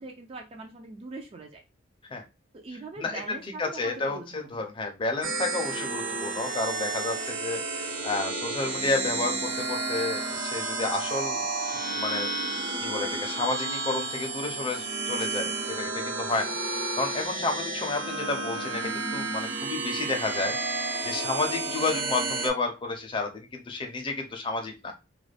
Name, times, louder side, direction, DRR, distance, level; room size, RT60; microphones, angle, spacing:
voice 1, 0.0-1.6 2.5-4.6, right 3 dB, 30° right, 3 dB, 0.3 m, -42 dB
voice 2, 3.0-11.4 11.9-12.3 12.8-24.9, left 3 dB, 25° left, 3 dB, 0.5 m, -31 dB
sound 1, 5.2-22.5, right 3 dB, 70° right, 0.8 m, -31 dB
2.4 x 2.1 x 3.2 m, 0.27 s
head